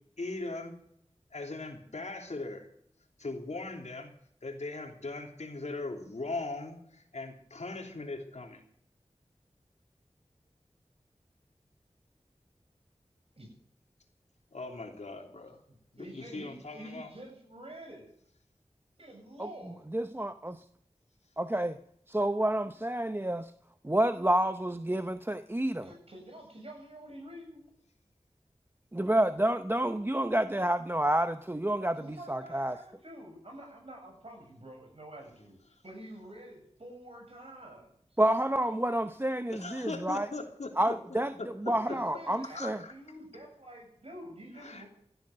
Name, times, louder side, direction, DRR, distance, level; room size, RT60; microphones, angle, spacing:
voice 1, 0.2-0.8 1.3-2.7 3.2-4.1 4.4-8.6 14.5-15.6 15.9-17.1 39.5-42.0 42.4-42.9 44.6-44.8, left 3 dB, 85° left, 3 dB, 3.1 m, -39 dB
voice 2, 15.7-18.1 19.0-19.9 25.8-27.6 31.9-35.6 35.8-38.2 41.9-44.9, right 1 dB, 60° right, 2 dB, 7.5 m, -48 dB
voice 3, 19.9-20.6 21.4-21.8 22.1-23.5 23.8-25.9 28.9-32.8 38.2-40.3 40.8-41.3 41.6-42.8, right 1 dB, 20° right, 9 dB, 0.8 m, -29 dB
16.5 x 11.5 x 6.7 m, 0.69 s
wide cardioid pair, 55°, 11 cm